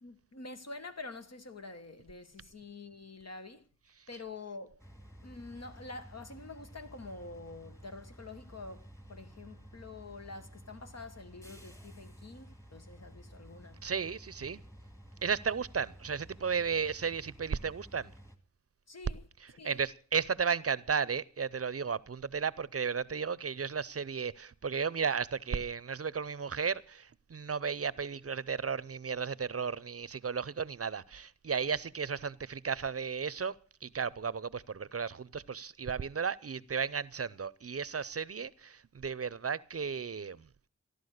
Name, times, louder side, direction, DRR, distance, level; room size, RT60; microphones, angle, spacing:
voice 1, 0.0-3.7 4.1-4.8 5.2-13.8 18.9-19.2 19.6-19.8, left 3 dB, 60° left, 1.4 m, -47 dB
sound 1, 4.8-18.4, equal, 10° left, 2.0 m, -53 dB
voice 2, 13.8-14.6 15.2-18.1 19.4-33.6 33.8-40.5, right 6 dB, 50° right, 0.6 m, -34 dB
14.5 x 11.5 x 6.4 m
wide cardioid pair, 55°, 29 cm